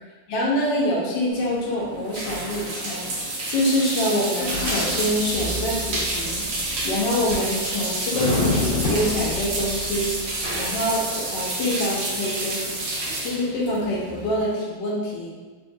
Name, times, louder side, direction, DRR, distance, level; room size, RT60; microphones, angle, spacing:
voice 1, 0.3-12.6 13.2-15.3, equal, 70° left, -4 dB, 1.3 m, -26 dB
sound 1, 1.3-14.5, right 2 dB, 65° right, 1.4 m, -29 dB
sound 2, 4.4-7.8 8.1-10.8, left 3 dB, 90° left, 1.5 m, -29 dB
sound 3, 7.3-7.8 8.8-10.3, equal, 35° left, 1.4 m, -34 dB
3.8 x 2.4 x 2.6 m, 1.4 s
omnidirectional pair, 2.2 m